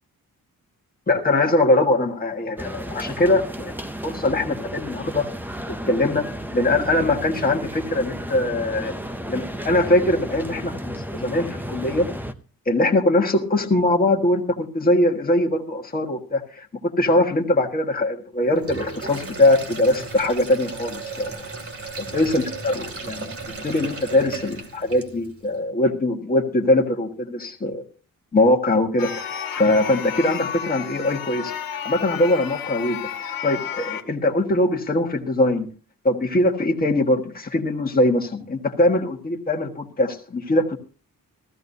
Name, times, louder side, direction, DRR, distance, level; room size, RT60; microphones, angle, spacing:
voice 1, 1.1-3.7 4.0-5.3 5.7-6.3 6.5-8.9 9.3-12.1 12.6-21.3 22.1-27.8 28.3-35.7 36.0-40.8, left 1 dB, 25° left, 2 dB, 1.6 m, -22 dB
sound 1, 2.6-12.3, equal, 5° right, 0.6 m, -33 dB
Sink (filling or washing), 18.5-25.4, right 3 dB, 40° right, 2.5 m, -35 dB
sound 2, 29.0-34.0, left 8 dB, 70° left, 1.5 m, -32 dB
15.5 x 15.0 x 2.7 m, 0.36 s
wide cardioid pair, 180°, 35 cm